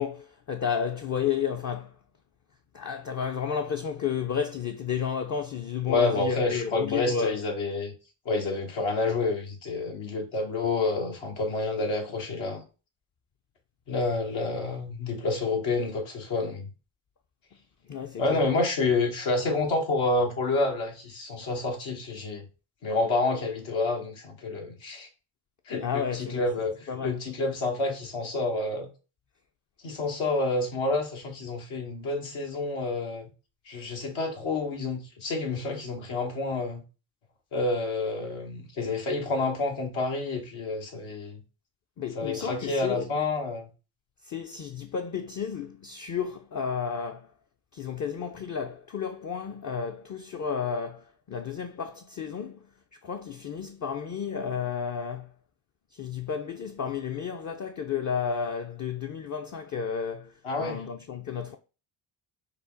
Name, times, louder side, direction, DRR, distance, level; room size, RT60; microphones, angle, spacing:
voice 1, 0.0-1.9 2.7-7.4 17.9-18.5 25.8-26.5 26.9-27.2 42.0-43.1 44.3-47.3 47.7-52.6 53.0-55.3 55.9-60.3 60.6-61.6, left 7 dB, 35° left, 0.6 m, -32 dB
voice 2, 5.9-7.9 8.2-12.6 13.9-16.6 18.2-22.5 22.8-25.1 25.7-28.9 29.8-33.3 33.7-36.8 37.5-41.4 42.1-43.7 60.4-60.8, left 3 dB, 70° left, 1.6 m, -29 dB
5.4 x 2.1 x 3.9 m
supercardioid pair, 55°, 50 cm